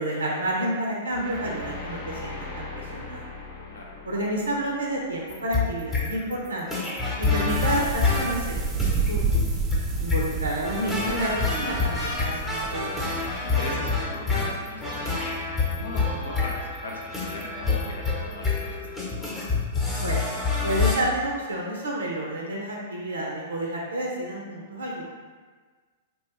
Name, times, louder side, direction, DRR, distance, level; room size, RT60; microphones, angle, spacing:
voice 1, 0.0-3.3 4.0-6.9 7.2-8.8 9.1-9.2 10.0-13.1 20.0-20.3 20.6-25.0, right 1 dB, 85° right, -2 dB, 0.5 m, -30 dB
sound 1, 1.1-6.2, left 3 dB, 45° left, 0.7 m, -40 dB
sound 2, 5.3-21.0, left 4 dB, 10° left, 0.8 m, -27 dB
sound 3, 7.5-13.4, right 4 dB, 25° right, 0.3 m, -30 dB
voice 2, 13.4-15.4 15.7-18.9, left 2 dB, 80° left, -2 dB, 0.6 m, -38 dB
2.8 x 2.2 x 3.1 m, 1.4 s
hypercardioid pair, 110°, 0 cm